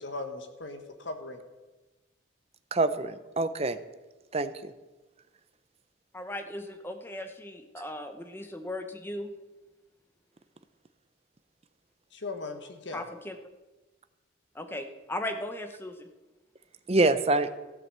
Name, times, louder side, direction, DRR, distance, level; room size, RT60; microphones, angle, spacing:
voice 1, 0.0-1.4 12.1-13.0, left 3 dB, 70° left, 6 dB, 1.4 m, -38 dB
voice 2, 2.7-3.8 4.3-4.7 16.9-17.5, right 2 dB, 30° right, 11 dB, 0.6 m, -25 dB
voice 3, 6.1-9.3 12.9-13.4 14.5-16.1, left 1 dB, 10° left, 7 dB, 0.9 m, -37 dB
14.0 x 7.6 x 6.8 m, 1.1 s
head